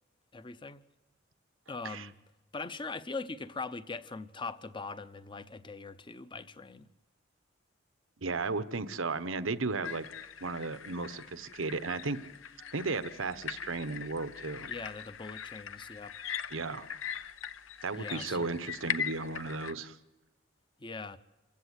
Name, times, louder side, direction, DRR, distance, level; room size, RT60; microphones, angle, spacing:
voice 1, 0.3-0.8 1.7-2.2 2.5-6.9 14.6-16.2 18.0-18.6 20.8-21.2, left 4 dB, 25° left, 0.7 m, -41 dB
voice 2, 8.2-10.1 10.4-12.2 12.7-14.7 16.5-16.9 17.8-20.0, right 3 dB, 90° right, 1.0 m, -34 dB
sound 1, 9.8-19.7, left 8 dB, 80° left, 0.8 m, -41 dB
27.5 x 15.5 x 8.2 m
head